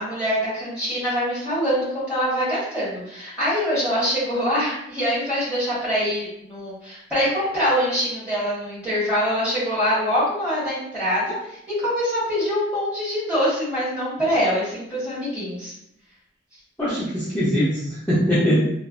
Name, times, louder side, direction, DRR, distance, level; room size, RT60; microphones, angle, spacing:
voice 1, 0.0-15.7, equal, 5° right, -11 dB, 1.4 m, -24 dB
voice 2, 16.8-18.6, equal, 10° left, -12 dB, 0.7 m, -21 dB
3.1 x 2.1 x 2.4 m, 0.76 s
head